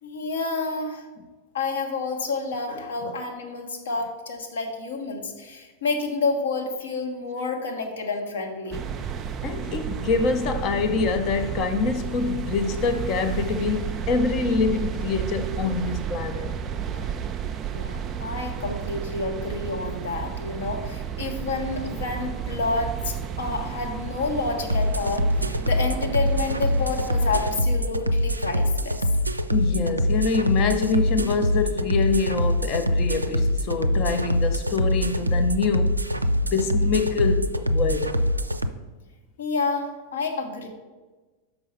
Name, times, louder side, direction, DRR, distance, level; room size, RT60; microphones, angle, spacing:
voice 1, 0.0-1.0 1.5-8.8 16.9-17.1 17.7-29.0 39.4-40.7, left 3 dB, 65° left, 1.1 m, -29 dB
sound 1, 8.7-27.6, right 8 dB, 25° right, 0.5 m, -32 dB
voice 2, 9.4-16.5 29.5-36.0 36.4-38.2, left 4 dB, 35° left, 0.7 m, -25 dB
sound 2, 24.7-38.7, equal, 85° right, 0.4 m, -24 dB
5.9 x 5.5 x 5.5 m
figure-of-eight pair, 90°, 0 cm